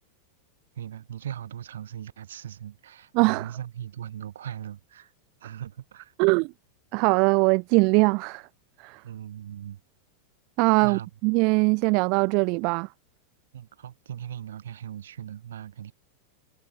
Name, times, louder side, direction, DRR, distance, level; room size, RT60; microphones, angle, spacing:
voice 1, 0.7-5.1 5.4-6.1 9.0-9.8 10.8-11.1 11.6-11.7 13.5-15.9, right 10 dB, 65° right, 6.8 m, -39 dB
voice 2, 3.1-3.5 6.2-6.5 6.9-8.5 8.8-9.0 10.6-12.9, right 32 dB, 45° right, 0.9 m, -22 dB
figure-of-eight pair, 90°, 0 cm